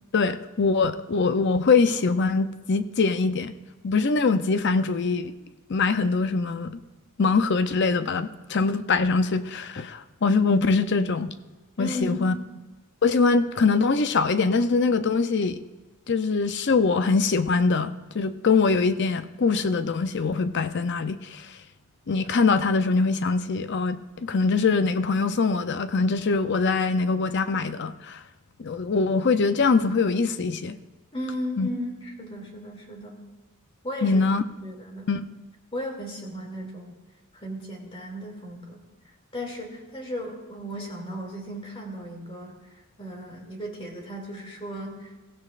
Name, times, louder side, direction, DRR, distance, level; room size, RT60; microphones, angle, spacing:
voice 1, 0.1-3.5 3.8-5.3 5.7-6.8 7.2-11.3 11.8-12.4 13.0-15.6 16.1-21.5 22.1-28.2 28.6-30.8 31.6-31.7 34.0-34.4 35.1-35.2, left 4 dB, 55° left, 11 dB, 0.6 m, -23 dB
voice 2, 11.8-12.4 31.1-33.2 33.8-34.3 34.6-35.1 35.7-36.9 37.3-38.8 39.3-42.6 43.0-45.2, equal, 25° left, 0 dB, 2.5 m, -35 dB
22.5 x 15.0 x 2.5 m, 1.2 s
head